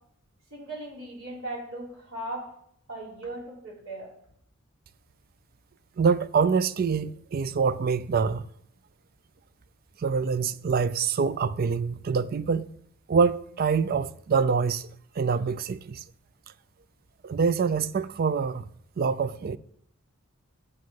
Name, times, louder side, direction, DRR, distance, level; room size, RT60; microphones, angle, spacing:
voice 1, 0.5-2.5 2.9-4.1, right 1 dB, 80° right, 3.5 m, -38 dB
voice 2, 6.0-8.4 10.0-12.7 13.1-14.9 15.2-16.0 17.2-18.6 19.0-19.6, right 5 dB, 45° right, 0.4 m, -25 dB
7.4 x 6.5 x 6.9 m
head